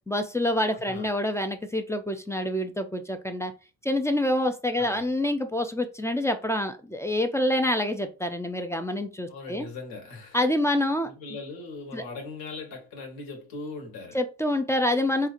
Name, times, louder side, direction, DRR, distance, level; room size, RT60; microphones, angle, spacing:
voice 1, 0.1-3.5 3.8-9.7 10.3-11.1 11.9-12.0 14.1-15.3, left 1 dB, 10° left, 0.3 m, -27 dB
voice 2, 0.7-1.1 4.7-5.1 9.3-10.4 11.0-14.2, left 3 dB, 75° left, 1.4 m, -40 dB
4.3 x 2.4 x 2.4 m
cardioid pair, 95°, 36 cm